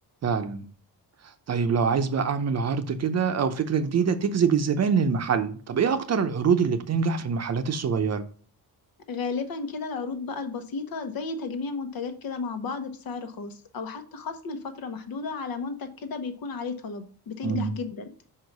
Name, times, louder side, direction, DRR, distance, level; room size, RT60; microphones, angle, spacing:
voice 1, 0.2-0.7 1.2-8.2 17.4-17.7, right 6 dB, 45° right, 0.7 m, -25 dB
voice 2, 9.1-18.3, left 4 dB, 65° left, 1.2 m, -33 dB
5.7 x 4.7 x 5.2 m
cardioid pair, 130°, 38 cm